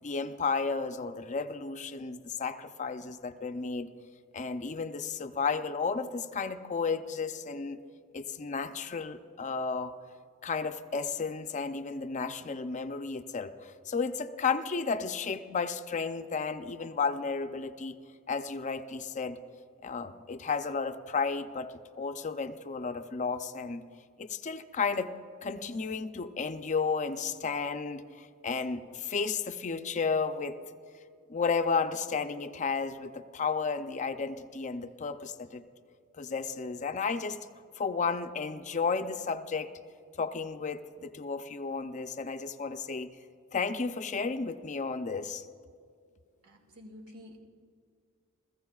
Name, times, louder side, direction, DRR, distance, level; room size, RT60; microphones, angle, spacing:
voice 1, 0.0-3.9 4.3-7.8 8.1-9.9 10.4-18.0 18.3-19.4 19.8-21.7 22.0-23.8 24.2-25.1 25.4-30.5 31.3-35.6 36.2-37.4 37.8-39.7 40.2-43.1 43.5-45.5, left 5 dB, 35° left, 9 dB, 0.5 m, -33 dB
voice 2, 46.4-47.4, left 1 dB, 85° right, 2 dB, 1.9 m, -49 dB
29.5 x 15.0 x 2.4 m, 2.2 s
head